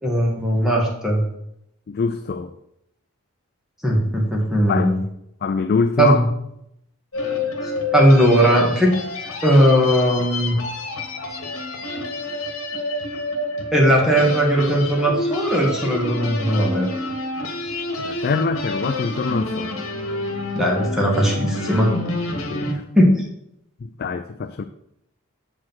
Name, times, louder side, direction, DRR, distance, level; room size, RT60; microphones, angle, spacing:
voice 1, 0.0-1.2 3.8-4.9 6.0-6.2 7.9-8.9 9.4-10.6 13.7-16.9 20.6-21.9 22.7-23.1, equal, ahead, -3 dB, 1.8 m, -18 dB
voice 2, 1.9-2.5 4.7-4.9 5.4-6.3 18.0-19.8 22.5-22.8 23.8-24.6, left 4 dB, 45° left, 8 dB, 0.4 m, -24 dB
sound 1, 7.1-22.7, left 2 dB, 70° left, 1.5 m, -28 dB
7.6 x 4.9 x 5.8 m, 0.78 s
head